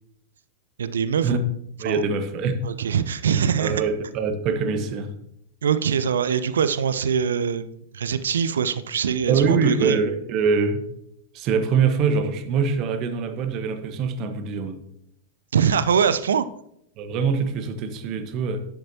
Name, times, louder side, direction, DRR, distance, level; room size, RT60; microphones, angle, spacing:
voice 1, 0.8-1.4 1.8-2.0 2.6-3.8 5.6-10.0 15.5-16.4, right 7 dB, 65° right, 0.5 m, -23 dB
voice 2, 1.8-2.6 3.6-5.1 9.3-10.8 11.3-14.8 17.0-18.6, right 5 dB, 40° right, 1.3 m, -23 dB
12.0 x 10.5 x 2.9 m
figure-of-eight pair, 90°, 0 cm